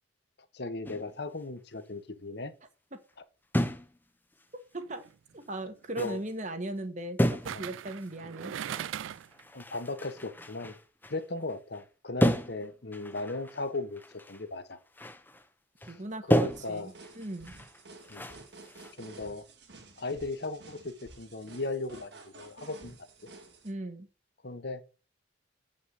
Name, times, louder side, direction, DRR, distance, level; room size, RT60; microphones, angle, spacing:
voice 1, 0.5-2.5 6.0-6.2 7.5-7.6 9.5-10.7 11.1-14.0 14.3-14.8 16.3-16.9 18.1-18.3 19.0-19.5 20.0-23.0 24.4-24.8, left 2 dB, 55° left, 1.0 m, -37 dB
sound 1, 0.9-1.2 3.5-4.0 4.3-4.5 5.3-5.4 6.0-6.3 7.2-7.7 8.0-8.1 8.7-11.9 12.2-14.4 14.7-15.5 15.8-16.0 16.3-18.9, equal, 10° left, 0.7 m, -32 dB
voice 2, 4.7-5.0 5.3-8.5 15.8-17.5 23.6-24.1, right 1 dB, 40° right, 1.3 m, -38 dB
sound 2, 4.8-5.1 7.4-9.4 9.8-9.9, right 9 dB, 80° right, 0.3 m, -39 dB
sound 3, 16.5-23.7, right 3 dB, 55° right, 2.3 m, -52 dB
8.1 x 5.6 x 6.4 m
head